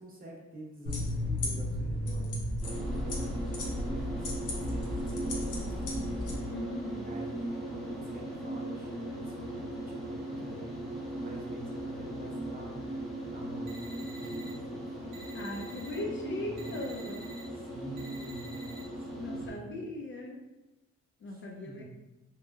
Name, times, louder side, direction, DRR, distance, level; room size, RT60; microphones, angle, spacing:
voice 1, 0.0-2.4 2.7-6.1 6.4-6.5 6.8-15.0 16.0-16.1 16.4-16.7 17.5-18.6 19.0-19.7 21.3-21.8, right 1 dB, 30° right, -3 dB, 0.8 m, -47 dB
sound 1, 0.9-6.4, left 1 dB, 80° left, 0.8 m, -34 dB
sound 2, 2.6-19.5, right 1 dB, ahead, 0.6 m, -38 dB
voice 2, 6.5-7.1 15.3-17.2 19.2-20.4 21.2-21.8, left 2 dB, 40° left, 0 dB, 0.4 m, -39 dB
sound 3, 13.7-14.5 15.1-16.0 16.6-17.4 18.0-18.8, right 3 dB, 80° right, 0.6 m, -50 dB
3.0 x 2.3 x 2.2 m, 1.0 s
cardioid pair, 90°, 30 cm